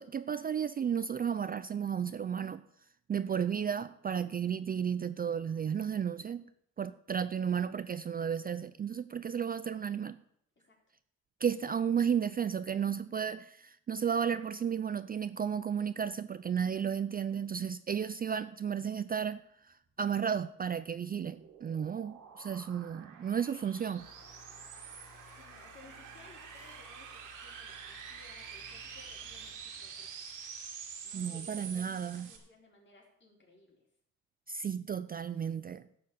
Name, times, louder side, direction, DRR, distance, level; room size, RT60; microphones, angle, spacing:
voice 1, 0.0-2.6 3.1-6.5 6.8-10.2 11.4-24.1 31.1-32.3 34.5-35.9, right 7 dB, 30° right, 0.4 m, -33 dB
sound 1, 20.8-32.4, right 7 dB, 85° right, 2.6 m, -47 dB
sound 2, 24.0-29.5, left 6 dB, 85° left, 3.3 m, -59 dB
voice 2, 25.3-30.4 31.0-33.8, left 2 dB, 40° left, 4.4 m, -59 dB
11.5 x 7.0 x 7.1 m
cardioid pair, 90°, 30 cm